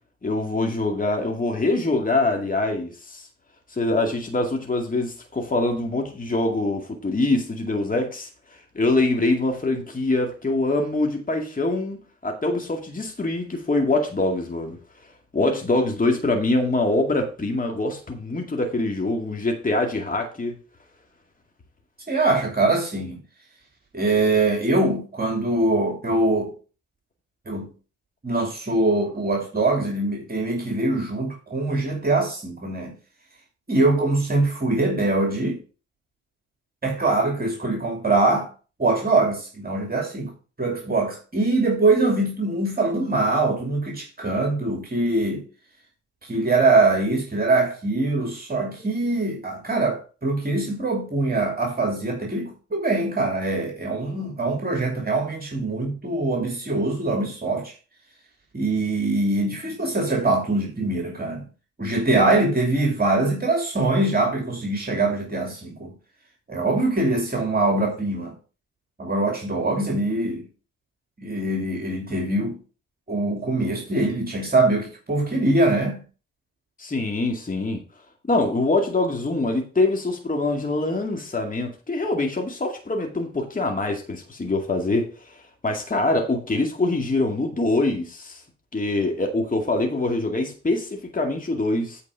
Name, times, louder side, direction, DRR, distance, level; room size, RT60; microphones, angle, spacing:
voice 1, 0.2-3.3 3.7-14.8 15.3-20.5 76.8-77.8 78.3-88.4 88.7-92.0, left 2 dB, 25° left, 2.2 m, -24 dB
voice 2, 22.1-23.2 23.9-26.5 27.5-27.7 28.2-33.0 33.7-35.6 36.8-38.5 38.8-40.3 40.6-45.4 46.2-57.7 58.5-61.4 61.8-65.9 66.5-68.4 69.0-70.5 71.2-72.6 73.1-76.0, right 2 dB, 30° right, 2.7 m, -23 dB
8.5 x 4.7 x 5.6 m
supercardioid pair, 55°, 32 cm